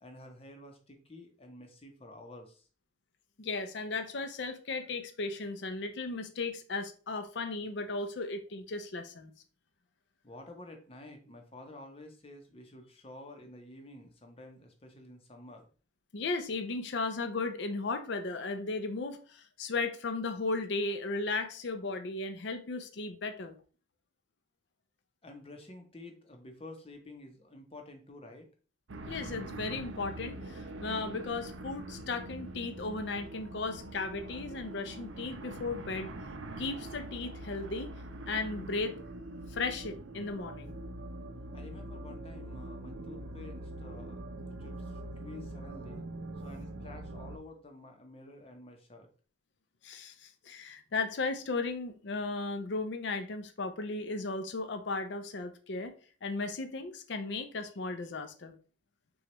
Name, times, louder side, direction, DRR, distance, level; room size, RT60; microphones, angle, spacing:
voice 1, 0.0-2.7 10.2-15.7 25.2-28.5 41.5-44.2 44.6-46.1 46.4-49.1, left 2 dB, 30° left, 0.7 m, -50 dB
voice 2, 3.4-9.3 16.1-23.6 29.1-36.1 36.6-37.9 38.3-39.0 39.5-40.7 49.8-55.9 56.2-58.5, left 3 dB, 65° left, 0.5 m, -36 dB
sound 1, 28.9-47.4, right 1 dB, 80° right, 0.6 m, -43 dB
6.0 x 2.3 x 2.9 m
head